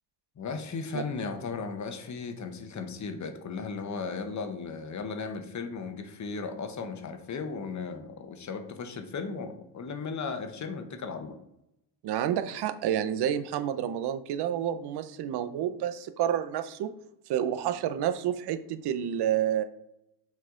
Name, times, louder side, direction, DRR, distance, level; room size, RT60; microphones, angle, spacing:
voice 1, 0.4-11.4, left 4 dB, 40° left, 7 dB, 1.0 m, -36 dB
voice 2, 12.0-16.9 17.3-19.6, right 10 dB, 65° right, 11 dB, 0.7 m, -29 dB
6.2 x 4.3 x 3.7 m, 0.83 s
cardioid pair, 90°, 43 cm